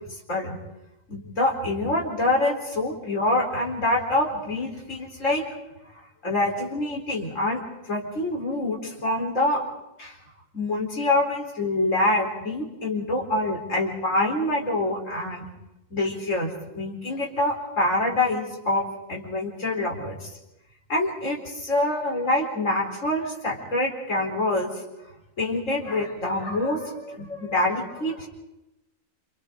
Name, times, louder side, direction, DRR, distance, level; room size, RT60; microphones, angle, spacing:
voice 1, 1.1-5.4 6.2-7.6 7.9-9.7 10.0-10.2 10.5-15.5 15.9-20.3 20.9-24.7 25.4-28.3, left 1 dB, 75° left, -1 dB, 4.5 m, -26 dB
29.0 x 28.5 x 3.8 m, 0.93 s
omnidirectional pair, 1.3 m